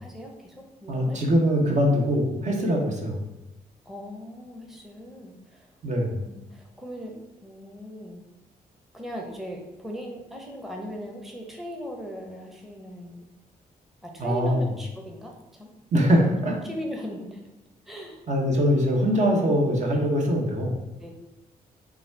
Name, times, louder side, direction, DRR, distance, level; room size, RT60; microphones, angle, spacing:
voice 1, 0.0-1.2 2.6-2.7 3.9-5.7 6.0-7.1 7.4-8.2 8.9-13.2 14.0-15.7 16.4-17.4 17.9-18.2 18.8-18.9 21.0-21.1, equal, ahead, 1 dB, 0.8 m, -39 dB
voice 2, 0.9-3.2 5.8-6.2 14.2-14.7 15.9-16.6 18.3-20.8, equal, 50° right, 0 dB, 1.0 m, -22 dB
3.9 x 2.3 x 4.5 m, 0.95 s
cardioid pair, 70°, 16 cm